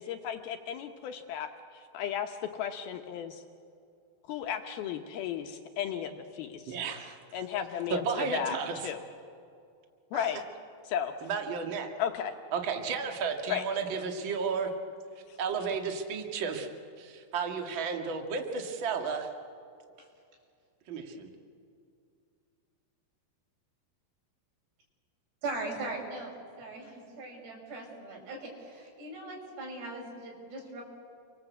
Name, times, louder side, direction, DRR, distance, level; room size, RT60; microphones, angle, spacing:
voice 1, 0.0-3.4 4.3-6.8 7.3-8.6 8.8-9.0 10.1-10.4 10.9-11.1 12.0-12.3 13.5-13.6 15.3-15.4, left 9 dB, 75° left, 5 dB, 2.7 m, -34 dB
voice 2, 6.7-7.2 7.9-8.8 10.1-10.3 11.2-11.9 12.5-14.7 15.4-16.7 17.0-19.3 20.9-21.3, right 5 dB, 40° right, 4 dB, 2.0 m, -33 dB
voice 3, 25.4-30.8, right 2 dB, 85° right, -1 dB, 7.9 m, -40 dB
29.5 x 24.0 x 8.3 m, 2.4 s
omnidirectional pair, 4.7 m